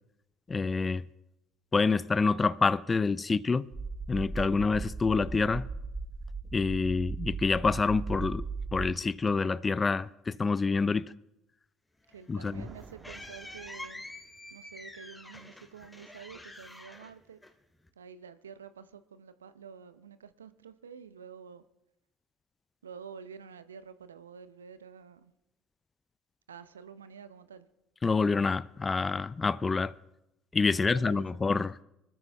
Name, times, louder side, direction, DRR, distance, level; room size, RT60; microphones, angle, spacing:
voice 1, 0.5-1.0 1.7-3.7 4.1-5.7 6.5-8.4 8.7-11.1 12.3-12.6 28.0-29.9 30.5-31.8, left 4 dB, 30° left, 0.5 m, -27 dB
sound 1, 3.7-8.9, right 4 dB, 25° right, 1.1 m, -37 dB
sound 2, 12.1-17.9, left 1 dB, 10° left, 2.1 m, -47 dB
voice 2, 12.1-14.0 14.5-17.4 18.0-21.6 22.8-25.3 26.5-27.7 30.7-31.6, right 6 dB, 85° right, 0.7 m, -49 dB
sound 3, 12.5-14.6, right 6 dB, 50° right, 1.4 m, -52 dB
24.5 x 13.5 x 3.5 m
hypercardioid pair, 55°, 0 cm